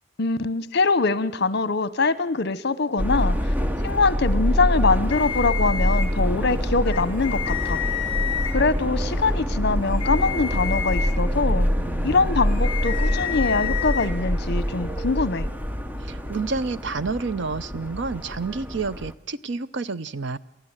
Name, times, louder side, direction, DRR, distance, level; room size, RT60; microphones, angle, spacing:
voice 1, 0.2-3.5 3.8-7.8 8.5-11.7 12.0-15.5, left 3 dB, 60° left, 16 dB, 1.0 m, -23 dB
Subway metro underground, 3.0-19.1, equal, 10° right, 0.9 m, -25 dB
sound 1, 5.1-6.1 6.9-8.5 9.8-11.1 12.4-14.1, left 9 dB, 30° left, 2.9 m, -30 dB
voice 2, 16.0-20.4, right 4 dB, 70° right, 15 dB, 0.7 m, -29 dB
29.0 x 13.0 x 8.9 m, 0.87 s
head